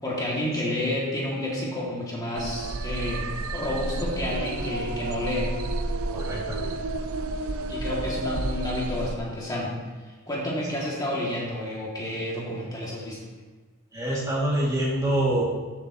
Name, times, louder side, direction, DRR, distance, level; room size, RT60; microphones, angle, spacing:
voice 1, 0.0-5.5 7.7-9.7 10.3-13.2, left 1 dB, 15° left, -5 dB, 2.6 m, -30 dB
sound 1, 2.4-9.2, right 2 dB, 70° right, 0.6 m, -31 dB
voice 2, 6.1-6.8 13.9-15.4, right 1 dB, 15° right, -6 dB, 2.7 m, -26 dB
15.0 x 7.4 x 3.2 m, 1.4 s
head